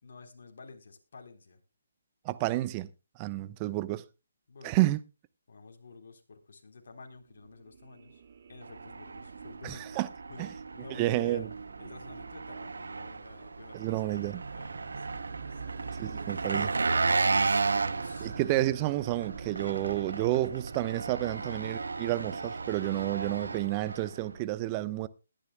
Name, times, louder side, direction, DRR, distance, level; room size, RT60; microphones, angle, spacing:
voice 1, 0.0-1.6 4.5-4.8 5.5-8.2 8.5-9.8 10.3-11.5 11.8-14.2 14.5-16.1 17.1-18.7 19.6-20.0 21.3-21.7, left 4 dB, 65° left, 3.7 m, -50 dB
voice 2, 2.2-2.9 3.2-4.1 4.6-5.0 9.6-10.1 10.4-10.5 11.0-11.5 13.7-14.4 16.0-16.7 18.2-25.1, right 17 dB, 25° right, 0.9 m, -30 dB
sound 1, 7.4-23.6, right 5 dB, 55° right, 1.8 m, -44 dB
Engine, 8.6-24.4, right 4 dB, 85° right, 0.6 m, -34 dB
20.5 x 10.5 x 2.2 m
hypercardioid pair, 155°, 0 cm